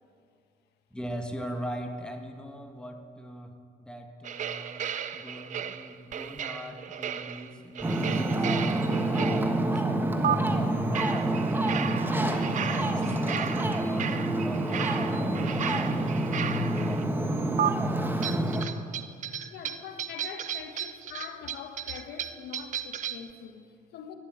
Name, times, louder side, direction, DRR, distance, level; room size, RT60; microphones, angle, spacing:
voice 1, 0.9-4.8 5.1-11.4 11.7-14.1 14.4-17.7, equal, 5° left, 1.7 m, -41 dB
sound 1, 4.2-9.8 10.2-10.3 10.9-17.0 17.6-17.7 18.2-23.3, right 9 dB, 50° right, 0.7 m, -34 dB
Ocean, 7.8-18.6, right 1 dB, 10° right, 1.3 m, -27 dB
voice 2, 19.5-24.1, left 7 dB, 75° left, 1.3 m, -43 dB
14.0 x 12.0 x 8.8 m
cardioid pair, 110°, 17 cm